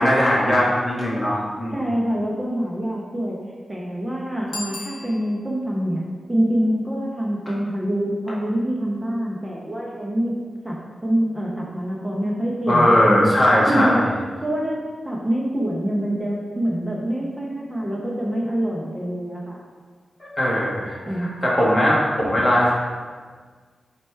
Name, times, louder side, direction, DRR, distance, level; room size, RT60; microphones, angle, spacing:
voice 1, 0.0-1.8 12.7-14.0 20.2-22.7, equal, 15° left, -6 dB, 0.9 m, -19 dB
voice 2, 1.7-3.4 3.7-10.4 10.6-13.3 13.7-14.1 14.4-19.6 21.1-21.3, equal, 10° right, -3 dB, 0.4 m, -25 dB
Bicycle bell, 4.4-5.7, left 2 dB, 65° left, 0.7 m, -36 dB
4.3 x 2.2 x 4.3 m, 1.5 s
wide cardioid pair, 155°, 0 cm